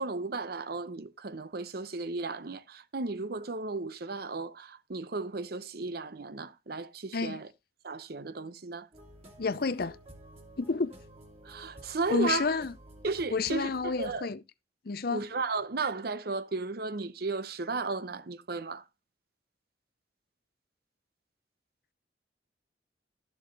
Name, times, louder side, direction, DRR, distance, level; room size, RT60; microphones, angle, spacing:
voice 1, 0.0-7.5 7.8-8.9 11.4-12.5 13.0-14.3 15.1-18.8, right 3 dB, 55° right, 0.8 m, -34 dB
sound 1, 8.9-14.2, equal, 35° right, 2.9 m, -52 dB
voice 2, 9.4-10.0 10.6-10.9 12.1-12.7 13.3-14.4 14.8-15.3, left 4 dB, 55° left, 0.6 m, -30 dB
12.5 x 7.1 x 4.0 m
head